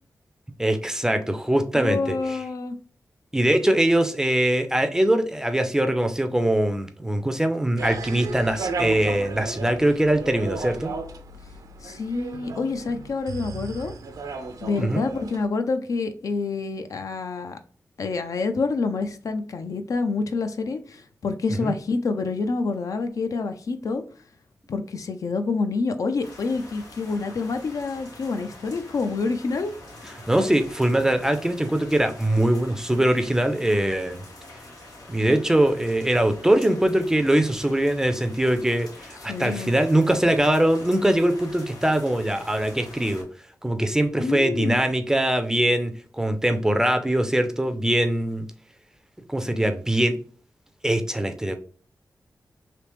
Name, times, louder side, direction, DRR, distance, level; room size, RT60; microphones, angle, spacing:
voice 1, 0.6-2.4 3.3-10.9 14.8-15.1 21.6-21.7 30.3-34.2 35.1-43.3 43.6-48.5 49.3-50.2 50.8-51.6, right 1 dB, 10° right, 0.4 m, -22 dB
voice 2, 1.7-2.8 11.8-13.9 14.6-17.6 18.0-24.0 24.7-29.7 39.3-39.7 44.2-44.8, left 4 dB, 65° left, 0.4 m, -27 dB
sound 1, 7.8-15.5, right 4 dB, 70° right, 0.5 m, -34 dB
sound 2, 26.2-43.2, left 2 dB, 85° left, 1.4 m, -45 dB
3.3 x 2.8 x 3.0 m
wide cardioid pair, 120°, 6 cm